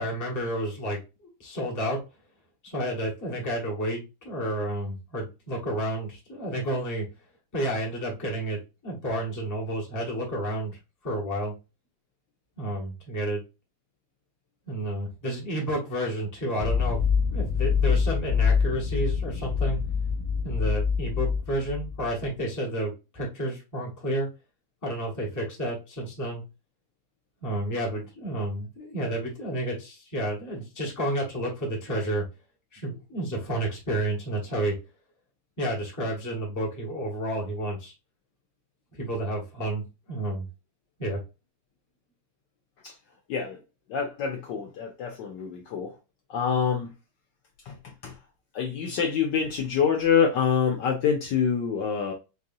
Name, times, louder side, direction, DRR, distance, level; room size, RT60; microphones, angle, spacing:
voice 1, 0.0-2.0 2.6-7.1 7.5-10.8 11.0-11.5 12.6-13.4 14.7-17.0 17.3-19.8 20.4-24.3 24.8-26.4 27.4-32.2 32.7-34.7 35.6-37.9 38.9-40.5 41.0-41.2, right 1 dB, 10° left, 0.9 m, -31 dB
sound 1, 16.6-22.3, left 6 dB, 75° right, 2.1 m, -25 dB
voice 2, 43.3-43.6 43.9-46.0 46.3-46.9 47.6-48.2 48.5-52.1, left 7 dB, 70° left, 1.1 m, -26 dB
4.7 x 2.6 x 2.6 m
omnidirectional pair, 2.3 m